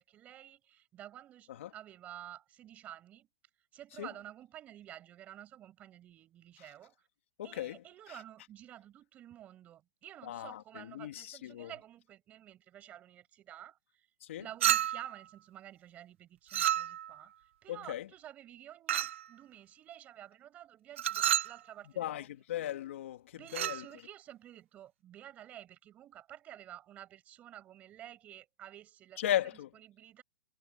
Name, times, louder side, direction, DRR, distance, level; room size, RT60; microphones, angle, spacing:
voice 1, 0.0-3.3 3.7-7.1 7.4-14.1 14.4-22.4 23.3-29.2 29.7-30.2, right 12 dB, 15° right, 7.5 m, -51 dB
voice 2, 7.4-7.8 10.3-11.7 14.3-14.4 17.7-18.1 22.0-23.2 23.5-23.8 29.2-29.7, left 12 dB, 50° left, 2.6 m, -36 dB
Chink clink, 14.6-15.2 16.5-17.2 18.9-19.3 21.0-21.6 23.5-23.8, right 12 dB, 50° right, 0.6 m, -30 dB
hypercardioid pair, 175°, 8 cm